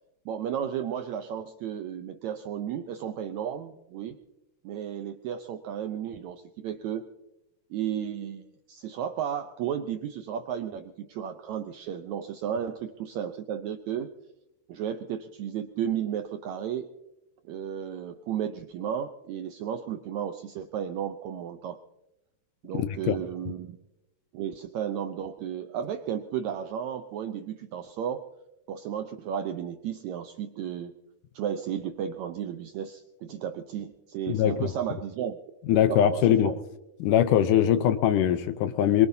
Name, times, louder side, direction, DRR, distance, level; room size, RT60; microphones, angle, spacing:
voice 1, 0.3-4.2 4.6-7.1 7.7-14.1 14.7-16.9 17.5-21.8 22.6-23.8 24.3-28.3 28.7-31.0 31.3-35.4 35.7-36.6 37.8-37.9, right 9 dB, 80° right, 7 dB, 1.6 m, -33 dB
voice 2, 22.7-23.2 34.3-34.7 35.7-36.5 37.0-39.1, left 10 dB, 75° left, 11 dB, 2.1 m, -22 dB
23.5 x 22.5 x 2.7 m, 0.93 s
omnidirectional pair, 4.0 m